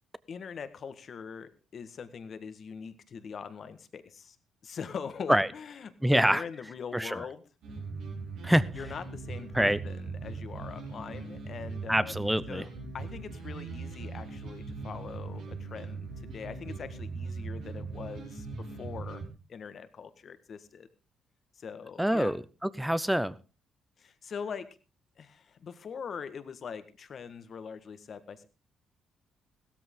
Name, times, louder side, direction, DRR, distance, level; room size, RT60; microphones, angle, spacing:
voice 1, 0.3-4.4 4.6-7.4 8.7-12.7 12.9-19.2 19.5-20.9 21.5-22.3 24.0-24.7 25.2-28.5, left 6 dB, 50° left, 12 dB, 1.6 m, -42 dB
voice 2, 6.0-6.4 6.9-7.2 8.4-8.7 9.5-9.8 11.9-12.6 22.0-23.3, equal, 5° right, 18 dB, 0.8 m, -25 dB
sound 1, 7.6-19.3, right 4 dB, 85° right, 5.5 m, -40 dB
16.0 x 13.5 x 3.8 m, 0.32 s
cardioid pair, 90°, 0 cm